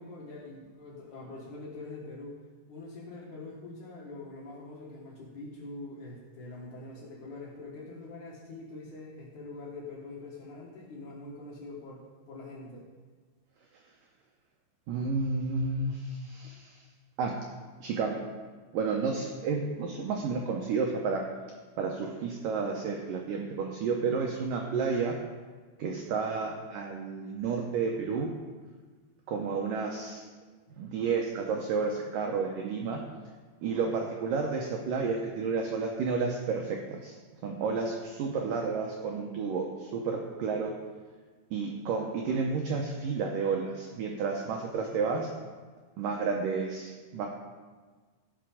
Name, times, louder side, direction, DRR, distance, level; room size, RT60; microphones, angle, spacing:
voice 1, 0.0-2.4 2.7-12.9, left 2 dB, 60° left, -3 dB, 2.4 m, -44 dB
voice 2, 14.9-16.8 17.2-17.3 17.8-18.2 18.7-21.2 21.8-25.2 25.8-28.3 29.3-30.2 30.8-33.0 33.6-37.2 37.4-40.7 41.5-45.3 46.0-47.3, right 4 dB, 80° right, 1 dB, 1.9 m, -31 dB
16.5 x 5.8 x 5.0 m, 1.4 s
omnidirectional pair, 4.9 m